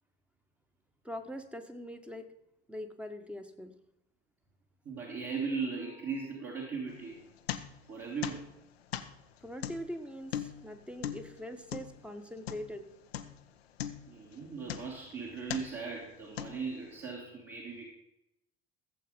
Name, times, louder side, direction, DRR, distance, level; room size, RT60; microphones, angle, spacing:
voice 1, 1.0-2.3 2.7-3.7 9.4-12.8, equal, 5° right, 7 dB, 1.4 m, -42 dB
voice 2, 4.8-7.2 7.9-8.5 10.5-10.6 14.1-17.8, right 5 dB, 40° right, -3 dB, 3.0 m, -38 dB
sound 1, 6.9-8.0 8.2-12.8 13.1-13.5 13.8-15.1 15.5-15.9 16.4-16.9, left 10 dB, 75° left, 0.8 m, -40 dB
15.0 x 7.8 x 5.4 m, 0.82 s
figure-of-eight pair, 55°, 31 cm